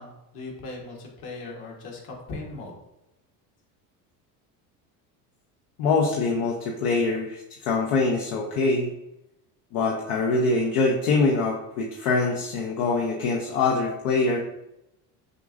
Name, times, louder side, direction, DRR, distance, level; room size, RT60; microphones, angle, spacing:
voice 1, 0.0-2.7, left 3 dB, 55° left, 0 dB, 1.4 m, -38 dB
voice 2, 5.8-8.9 9.7-14.4, left 3 dB, 75° left, -1 dB, 0.7 m, -24 dB
6.5 x 2.6 x 2.5 m, 0.89 s
hypercardioid pair, 80°, 44 cm